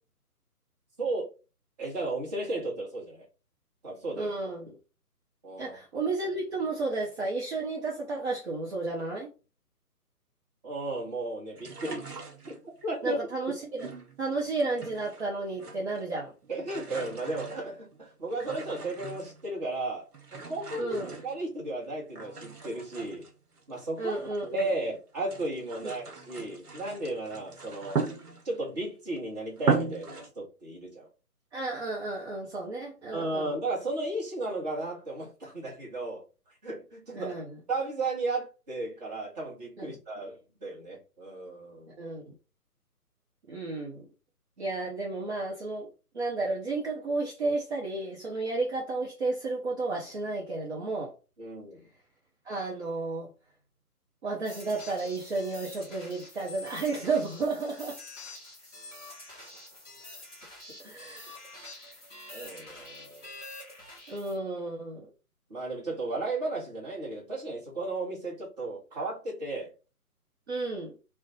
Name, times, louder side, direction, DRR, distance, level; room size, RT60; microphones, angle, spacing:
voice 1, 1.0-1.3 1.8-3.2 3.8-4.3 5.4-5.8 10.6-12.1 12.8-13.2 16.5-20.1 20.3-23.3 23.7-24.2 24.5-28.0 28.4-31.1 33.1-36.2 36.6-37.3 37.7-42.0 51.4-51.9 62.3-63.3 65.5-69.7, right 2 dB, 25° right, 1.1 m, -34 dB
voice 2, 4.2-4.8 5.6-9.3 13.0-13.9 14.2-16.3 20.8-21.2 24.0-24.7 31.5-33.6 37.1-37.6 39.8-40.0 42.0-42.4 43.5-44.1 44.6-45.9 46.1-51.1 52.4-53.3 54.2-58.0 60.8-61.3 64.1-65.1 70.5-70.9, right 3 dB, 45° right, 0.8 m, -32 dB
sound 1, 11.6-12.8 13.8-15.3 15.5-16.1 16.4-19.5 20.1-21.8 22.2-24.8 25.2-28.7 29.2-29.3 29.6-30.3, right 4 dB, 75° right, 1.0 m, -37 dB
sound 2, 54.4-64.4, left 2 dB, 5° left, 1.1 m, -47 dB
2.4 x 2.2 x 4.0 m
figure-of-eight pair, 140°, 46 cm